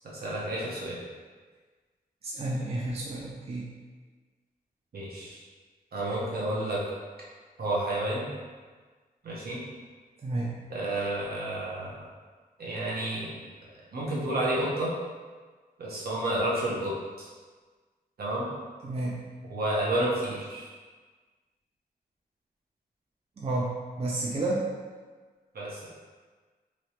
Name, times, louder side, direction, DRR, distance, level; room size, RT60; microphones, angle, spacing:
voice 1, 0.2-1.0 4.9-5.4 5.9-6.8 7.6-8.3 9.2-9.6 10.7-12.0 12.6-13.3 13.9-14.9 15.8-17.3 18.2-18.5 19.5-20.7 25.5-25.9, right 1 dB, 75° right, -6 dB, 0.9 m, -30 dB
voice 2, 2.2-3.7 10.2-10.5 18.8-19.2 23.4-23.7 24.0-24.7, right 2 dB, 40° right, -4 dB, 0.4 m, -30 dB
3.2 x 2.9 x 2.9 m, 1.4 s
wide cardioid pair, 110°, 16 cm